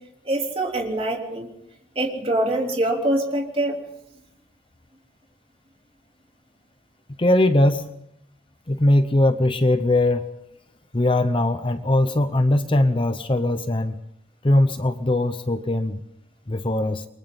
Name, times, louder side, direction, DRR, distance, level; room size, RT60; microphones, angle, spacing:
voice 1, 0.3-1.5 2.0-3.8, right 1 dB, 30° right, 0 dB, 3.5 m, -24 dB
voice 2, 7.2-7.9 8.7-10.3 10.9-14.0 14.4-16.0 16.5-17.1, left 1 dB, 25° left, 10 dB, 0.7 m, -20 dB
29.0 x 23.5 x 4.0 m, 0.79 s
head